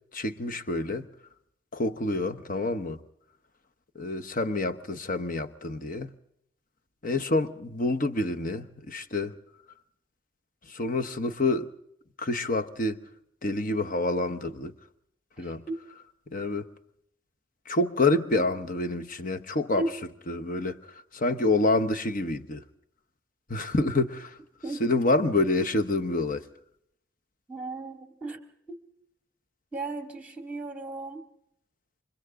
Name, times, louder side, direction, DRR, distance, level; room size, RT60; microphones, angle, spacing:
voice 1, 0.1-1.0 1.7-3.0 3.9-6.1 7.0-9.3 10.7-11.7 12.2-13.0 13.4-14.7 15.4-15.6 16.3-16.7 17.7-19.8 20.3-20.8 21.1-22.6 23.5-24.3 24.8-26.4, left 2 dB, 45° left, 1.1 m, -27 dB
voice 2, 15.4-15.8 19.8-19.9 24.6-25.0 27.5-28.4 28.7-28.8 29.7-31.2, right 2 dB, 10° right, 2.4 m, -35 dB
28.5 x 25.5 x 3.8 m
head